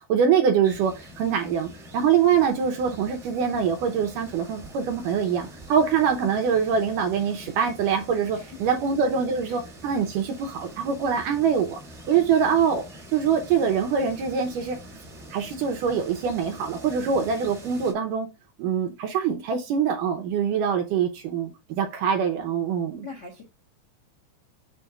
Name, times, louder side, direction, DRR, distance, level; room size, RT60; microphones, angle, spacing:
voice 1, 0.1-11.8 12.1-12.8 13.1-14.8 15.3-18.3 18.6-23.1, right 7 dB, 75° right, 2.1 m, -24 dB
sound 1, 0.6-17.9, equal, 25° right, 1.4 m, -45 dB
voice 2, 23.0-23.5, left 4 dB, 75° left, 0.9 m, -41 dB
7.1 x 2.5 x 5.6 m
omnidirectional pair, 4.4 m